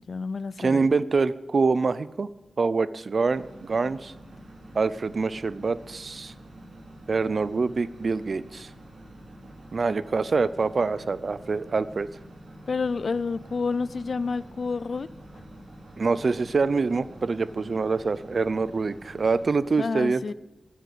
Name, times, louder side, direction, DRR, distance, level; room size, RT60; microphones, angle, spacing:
voice 1, 0.1-0.9 12.7-15.1 19.8-20.3, left 4 dB, 60° left, 18 dB, 0.4 m, -29 dB
voice 2, 0.6-2.3 2.6-4.1 4.7-6.3 7.1-8.7 9.7-12.1 16.0-20.2, right 4 dB, 55° right, 16 dB, 0.6 m, -25 dB
sound 1, 3.2-19.5, right 1 dB, 70° right, 3.9 m, -47 dB
12.0 x 10.0 x 8.4 m, 1.1 s
wide cardioid pair, 135°, 0 cm